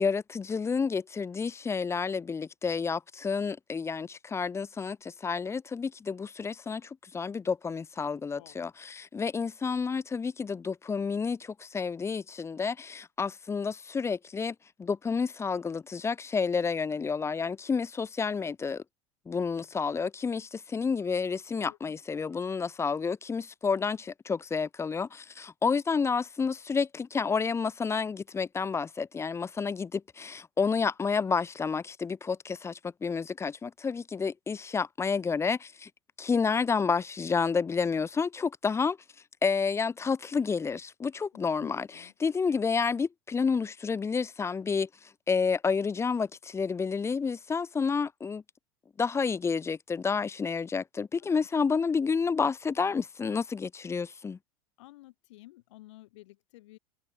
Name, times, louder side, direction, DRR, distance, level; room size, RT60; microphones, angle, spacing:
voice 1, 0.0-18.8 19.3-35.9 36.2-39.0 39.4-41.9 42.2-44.9 45.3-48.4 49.0-54.4, left 5 dB, 15° left, 0.7 m, -30 dB
voice 2, 21.5-22.0 30.6-30.9 41.3-42.1 51.2-51.5 54.8-56.8, left 18 dB, 65° left, 5.8 m, -53 dB
hypercardioid pair, 90°, 16 cm